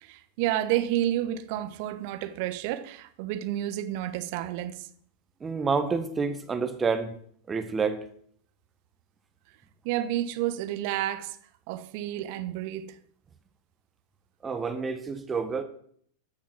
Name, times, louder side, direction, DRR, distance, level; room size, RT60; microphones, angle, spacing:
voice 1, 0.0-4.9 9.8-11.4 11.7-12.9, right 13 dB, 45° right, 1.1 m, -30 dB
voice 2, 5.4-7.1 7.5-8.0 14.4-15.6, right 5 dB, 15° right, 1.4 m, -28 dB
14.0 x 6.5 x 6.1 m
figure-of-eight pair, 90°, 0 cm